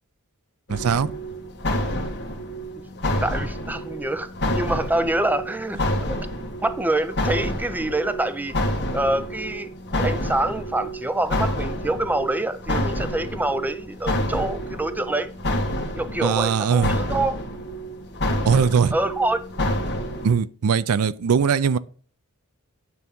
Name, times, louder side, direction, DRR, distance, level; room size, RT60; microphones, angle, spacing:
sound 1, 0.7-20.4, equal, 50° left, 1.6 m, -28 dB
voice 1, 0.7-1.1 16.2-17.0 18.5-18.9 20.2-21.8, right 6 dB, 75° right, 0.4 m, -20 dB
voice 2, 3.2-5.8 6.1-6.2 6.6-9.7 10.0-15.3 16.0-17.4 18.6-19.4, right 1 dB, 10° right, 0.4 m, -26 dB
9.6 x 3.5 x 5.2 m
head